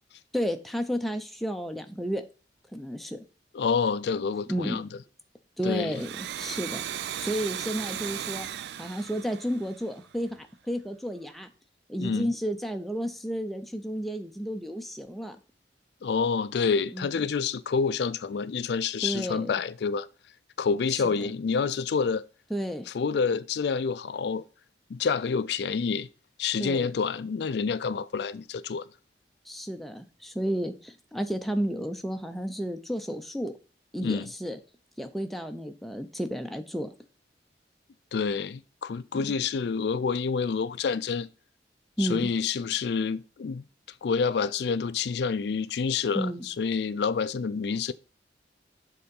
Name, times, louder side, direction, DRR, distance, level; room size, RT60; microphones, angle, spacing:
voice 1, 0.3-2.2 2.7-3.2 4.5-4.8 5.6-6.8 7.2-8.5 8.8-11.5 11.9-15.4 16.9-17.2 19.0-19.5 20.9-21.3 22.5-22.9 26.6-26.9 29.5-33.5 33.9-34.6 35.0-36.9 39.2-39.4 42.0-42.3 46.1-46.5, equal, ahead, 0.6 m, -32 dB
voice 2, 3.5-4.9 5.6-5.9 12.0-12.3 16.0-20.1 20.6-22.2 22.9-24.4 24.9-26.1 26.4-28.8 34.0-34.3 38.1-41.3 42.0-43.6 44.0-47.9, left 5 dB, 70° left, 0.4 m, -28 dB
Domestic sounds home sounds, 5.8-10.3, right 10 dB, 70° right, 0.3 m, -36 dB
6.9 x 3.8 x 5.3 m
head